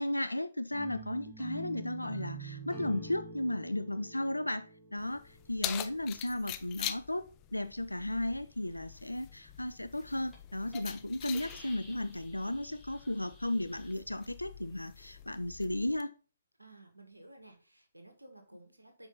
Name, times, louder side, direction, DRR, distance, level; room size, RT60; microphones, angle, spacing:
voice 1, 0.0-7.2 7.5-16.1, left 1 dB, 90° left, 0.4 m, -35 dB
sound 1, 0.7-5.8, right 2 dB, 20° right, 2.7 m, -46 dB
Keys jangling, 5.0-16.0, left 13 dB, 25° left, 0.6 m, -45 dB
Hiss, 9.7-9.9 10.3-10.4 10.7-11.0 11.3-13.9, left 2 dB, 5° left, 2.6 m, -53 dB
voice 2, 16.6-19.1, right 1 dB, 90° right, 1.8 m, -55 dB
8.0 x 5.3 x 4.0 m
figure-of-eight pair, 130°, 0 cm